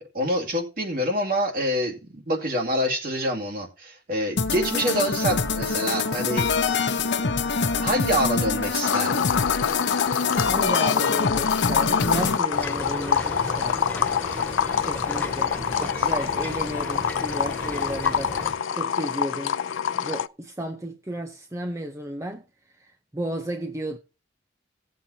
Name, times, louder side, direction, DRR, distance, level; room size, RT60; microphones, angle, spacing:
voice 1, 0.1-6.8 7.8-9.3 15.7-16.1, equal, 50° right, 2.4 m, -26 dB
sound 1, 4.4-12.4, left 4 dB, 65° left, 0.8 m, -25 dB
sound 2, 8.8-20.3, left 7 dB, 85° left, 0.5 m, -26 dB
voice 2, 10.5-13.8 14.8-19.6 19.9-22.4 23.1-24.0, right 1 dB, 15° right, 0.6 m, -33 dB
sound 3, 12.5-18.5, left 1 dB, 10° left, 1.4 m, -35 dB
18.0 x 7.4 x 2.8 m
head